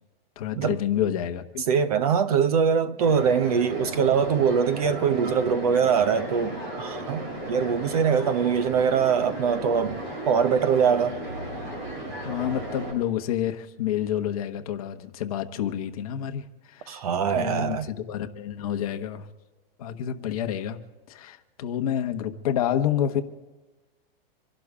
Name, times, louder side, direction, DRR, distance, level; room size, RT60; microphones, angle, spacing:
voice 1, 0.4-1.6 12.2-17.0 17.3-19.3 19.8-20.8 21.1-23.2, left 10 dB, 35° left, 1.1 m, -29 dB
voice 2, 1.7-10.0 10.3-11.2 16.9-17.9, right 7 dB, 40° right, 0.8 m, -23 dB
sound 1, 3.0-12.9, right 1 dB, 55° right, 6.5 m, -35 dB
27.0 x 12.0 x 3.6 m
supercardioid pair, 175°, 30 cm